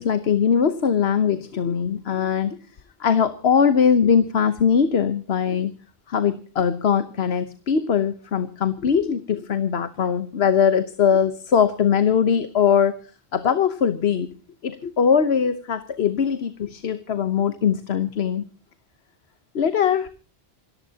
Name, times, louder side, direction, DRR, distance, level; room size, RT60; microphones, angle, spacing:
voice 1, 0.0-2.6 3.0-5.7 6.1-13.0 13.3-14.3 14.6-18.4 19.5-20.1, left 7 dB, 85° left, 12 dB, 1.2 m, -21 dB
27.5 x 14.0 x 2.8 m, 0.38 s
omnidirectional pair, 1.0 m